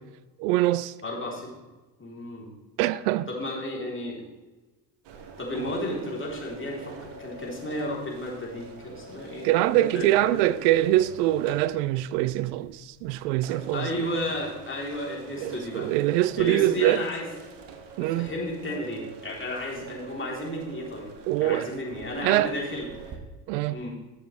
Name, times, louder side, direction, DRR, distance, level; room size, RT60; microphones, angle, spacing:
voice 1, 0.4-0.9 2.8-3.3 9.4-13.9 15.4-17.0 18.0-18.3 21.3-21.7 22.2-22.5 23.5-23.8, right 15 dB, 75° right, 0.5 m, -24 dB
voice 2, 1.0-1.5 2.0-2.5 3.3-4.2 5.4-10.5 13.7-15.9 16.4-17.3 18.0-21.1 21.4-23.2 23.7-24.0, left 1 dB, 25° left, 3.5 m, -33 dB
sound 1, 5.0-23.2, right 4 dB, 55° right, 1.6 m, -45 dB
12.5 x 7.3 x 3.3 m
hypercardioid pair, 65°, 49 cm